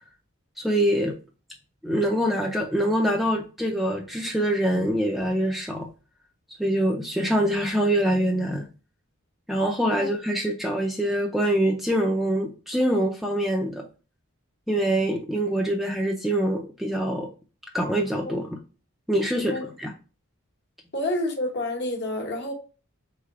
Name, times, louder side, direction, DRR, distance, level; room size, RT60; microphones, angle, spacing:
voice 1, 0.6-1.1 1.8-5.9 6.6-8.7 9.5-13.8 14.7-17.3 17.7-18.6 19.1-19.5 19.8-19.9, right 1 dB, ahead, 0.4 m, -24 dB
voice 2, 20.9-22.5, left 1 dB, 50° left, 1.0 m, -28 dB
3.7 x 3.3 x 3.6 m
head